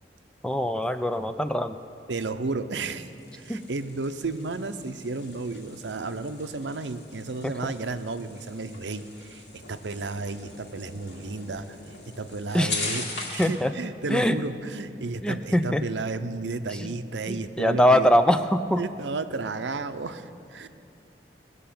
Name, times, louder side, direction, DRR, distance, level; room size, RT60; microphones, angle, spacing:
voice 1, 0.4-1.8 3.5-3.6 7.4-7.7 12.5-12.8 13.4-13.7 14.1-14.4 15.2-15.8 16.7-16.9 17.3-18.8, equal, 5° left, 10 dB, 0.4 m, -23 dB
voice 2, 2.1-18.1 18.8-20.7, right 3 dB, 90° right, 10 dB, 0.7 m, -33 dB
sound 1, 2.9-13.6, left 3 dB, 85° left, 2.6 m, -40 dB
19.5 x 6.8 x 8.6 m, 2.6 s
head